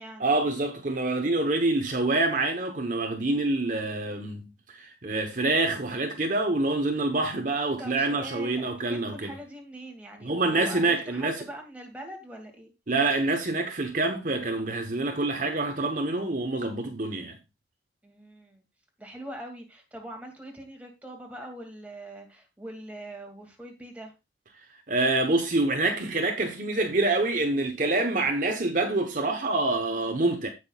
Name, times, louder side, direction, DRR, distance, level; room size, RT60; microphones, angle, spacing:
voice 1, 0.2-9.3 10.2-11.4 12.9-17.4 24.9-30.5, right 2 dB, 45° right, 1.1 m, -26 dB
voice 2, 7.8-12.7 18.0-18.6 19.0-24.1, right 1 dB, 10° right, 2.4 m, -42 dB
16.0 x 6.2 x 2.4 m
head